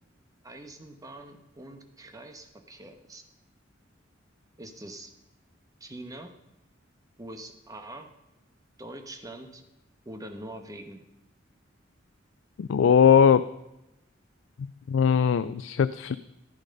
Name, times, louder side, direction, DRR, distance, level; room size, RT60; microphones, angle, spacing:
voice 1, 0.4-3.2 4.6-5.1 5.8-6.3 7.2-8.1 8.8-9.6 10.0-11.0, right 1 dB, 20° right, 6 dB, 1.2 m, -43 dB
voice 2, 12.6-13.5 14.9-16.2, left 7 dB, 70° left, 14 dB, 0.4 m, -20 dB
14.5 x 9.2 x 5.3 m, 0.91 s
head